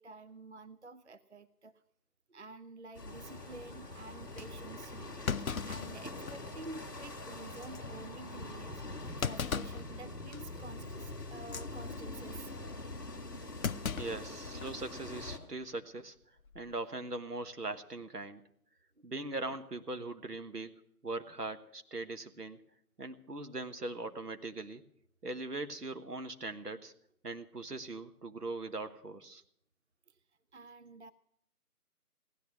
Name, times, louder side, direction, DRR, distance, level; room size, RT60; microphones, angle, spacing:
voice 1, 0.0-1.7 2.3-5.2 5.6-8.8 9.2-12.5 15.5-15.6 30.1-30.2 30.5-31.1, right 2 dB, 50° right, 12 dB, 0.5 m, -50 dB
sound 1, 2.9-15.4, left 2 dB, 15° left, 1.4 m, -44 dB
sound 2, 3.1-9.1, left 1 dB, 35° left, 0.8 m, -57 dB
Thump thud, 3.7-3.8 4.4-4.5 5.3-6.6 7.0-7.1 7.6-7.8 9.2-9.9 10.3-10.6 11.4-11.7 13.6-14.8 15.2-15.3 16.4-16.7, left 6 dB, 65° left, 0.6 m, -37 dB
voice 2, 14.0-16.1 16.5-18.4 19.0-20.8 21.0-22.6 23.0-24.8 25.2-26.9 27.2-29.4, right 2 dB, 80° right, 8 dB, 1.5 m, -40 dB
16.5 x 11.0 x 6.3 m, 0.70 s
figure-of-eight pair, 160°, 47 cm